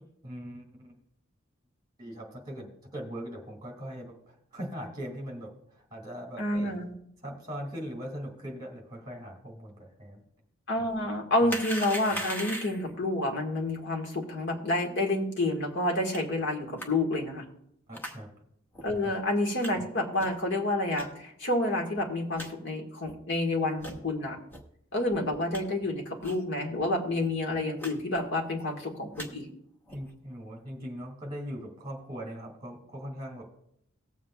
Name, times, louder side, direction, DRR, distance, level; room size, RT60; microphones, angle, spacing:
voice 1, 0.2-0.9 2.0-6.7 7.2-10.2 11.4-11.6 17.9-18.3 19.0-19.2 29.9-33.5, equal, 20° right, 0 dB, 2.4 m, -40 dB
voice 2, 6.4-6.9 10.7-17.5 18.8-24.4 24.9-29.5, left 1 dB, 60° left, 1 dB, 1.7 m, -29 dB
sound 1, 11.5-12.9 16.1-16.2 16.8-16.9 17.9-18.2 18.7-18.8 19.6-19.7 20.2-20.4 20.9-21.1 21.6-21.7 22.0-22.1 22.4-22.5 23.0-23.2 23.8-24.0 24.5-24.6 25.1-25.6 26.2-26.4 26.7-26.8 27.1-27.3 27.8-27.9 28.2-28.6 29.0-29.3 29.9-30.1, equal, 10° left, 1.0 m, -39 dB
19.0 x 7.4 x 2.4 m, 0.74 s
head